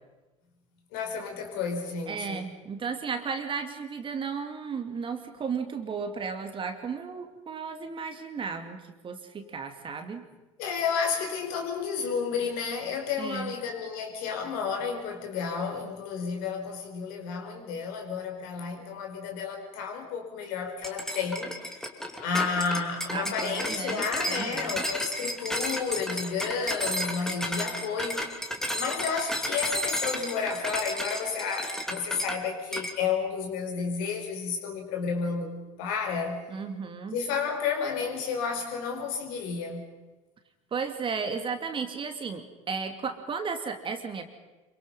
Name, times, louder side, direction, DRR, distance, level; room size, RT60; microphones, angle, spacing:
voice 1, 0.9-2.5 10.6-21.8 22.2-28.3 28.7-35.5 35.8-36.6 37.1-39.8, left 5 dB, 55° left, 3 dB, 5.0 m, -31 dB
voice 2, 2.1-10.3 13.2-13.5 23.1-24.8 36.5-37.2 40.7-44.2, right 5 dB, 30° right, 7 dB, 2.6 m, -34 dB
sound 1, 20.8-32.4 32.7-33.0, equal, 5° left, 3.0 m, -32 dB
27.0 x 24.0 x 5.7 m, 1.1 s
figure-of-eight pair, 75°, 18 cm